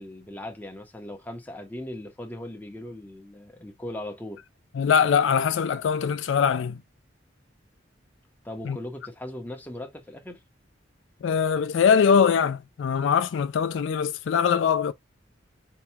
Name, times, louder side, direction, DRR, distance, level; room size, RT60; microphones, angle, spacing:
voice 1, 0.0-4.4 8.4-10.4, left 1 dB, 10° left, 0.9 m, -38 dB
voice 2, 4.8-6.8 8.7-8.8 11.2-14.9, left 7 dB, 70° left, 0.3 m, -22 dB
4.5 x 2.3 x 2.8 m
head